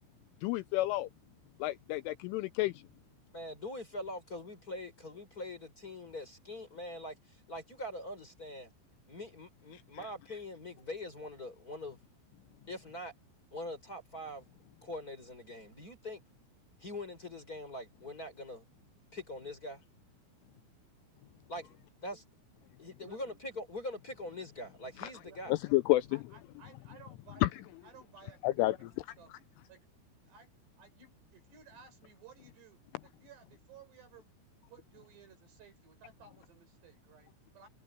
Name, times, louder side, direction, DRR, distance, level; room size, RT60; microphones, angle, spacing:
voice 1, 0.4-1.1 1.6-2.7 25.0-25.1 25.7-26.1 27.4-27.5 28.4-28.8, left 17 dB, 80° left, 3.0 m, -29 dB
voice 2, 3.3-8.7 9.1-12.0 12.7-13.1 13.5-14.4 14.8-16.2 16.8-18.7 19.1-19.8 21.5-22.2 22.8-25.5, left 1 dB, 20° left, 4.5 m, -43 dB
voice 3, 23.0-23.4 25.2-25.6 26.1-29.3 29.7-29.9 30.2-30.5 30.7-34.3 34.7-37.7, right 5 dB, 55° right, 7.5 m, -58 dB
omnidirectional pair, 6.0 m